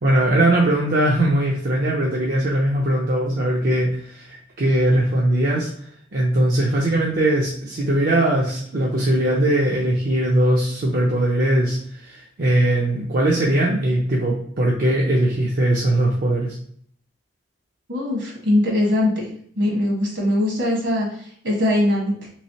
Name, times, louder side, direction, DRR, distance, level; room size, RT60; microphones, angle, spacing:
voice 1, 0.0-5.7 6.1-16.6, right 1 dB, 50° right, -3 dB, 0.5 m, -20 dB
voice 2, 17.9-19.3 19.6-22.3, left 1 dB, 70° right, -2 dB, 1.4 m, -21 dB
3.4 x 3.1 x 2.7 m, 0.62 s
head